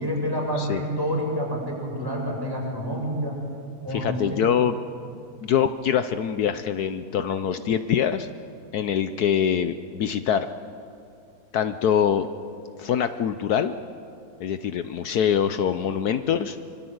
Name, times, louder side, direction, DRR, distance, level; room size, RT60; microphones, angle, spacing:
voice 1, 0.0-3.4 3.8-4.4, equal, 15° right, -3 dB, 7.5 m, -28 dB
voice 2, 3.9-4.8 5.4-8.3 8.7-10.5 11.5-12.3 12.8-13.7 14.4-16.6, left 8 dB, 70° left, 10 dB, 1.3 m, -24 dB
25.0 x 25.0 x 8.0 m, 2.5 s
omnidirectional pair, 1.8 m